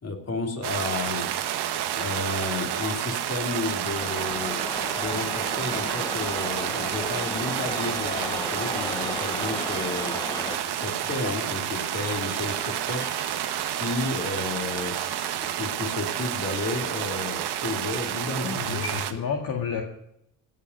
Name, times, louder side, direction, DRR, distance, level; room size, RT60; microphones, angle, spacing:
voice 1, 0.0-1.3 1.9-4.6 5.0-10.2 10.6-13.0 13.7-15.0 15.5-19.2, left 3 dB, 35° left, 1 dB, 3.5 m, -32 dB
sound 1, 0.6-19.1, right 11 dB, 60° right, 1.3 m, -30 dB
sound 2, 4.0-10.6, left 2 dB, 10° left, 0.7 m, -35 dB
sound 3, 7.8-15.4, left 5 dB, 70° left, 2.7 m, -47 dB
voice 2, 18.4-19.8, left 6 dB, 50° left, 1 dB, 2.1 m, -30 dB
16.5 x 5.6 x 9.4 m, 0.77 s
supercardioid pair, 65°, 44 cm